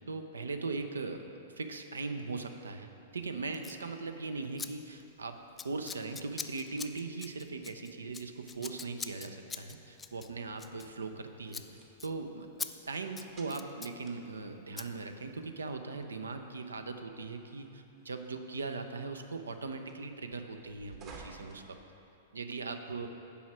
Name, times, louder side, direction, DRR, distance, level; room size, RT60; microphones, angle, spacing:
voice 1, 0.1-1.2 1.6-11.6 12.0-21.8 22.3-23.1, right 3 dB, 80° right, 7 dB, 0.5 m, -39 dB
Scissors, 3.5-3.8 4.6-4.7 5.0-5.2 5.6-11.2 11.5-11.7 12.0-12.1 12.6-12.7 13.0-14.0 14.8-14.9, left 5 dB, 15° left, 0.3 m, -43 dB
sound 1, 5.0-22.5, right 3 dB, 35° right, 1.0 m, -59 dB
6.9 x 4.9 x 6.2 m, 2.8 s
figure-of-eight pair, 100°, 0 cm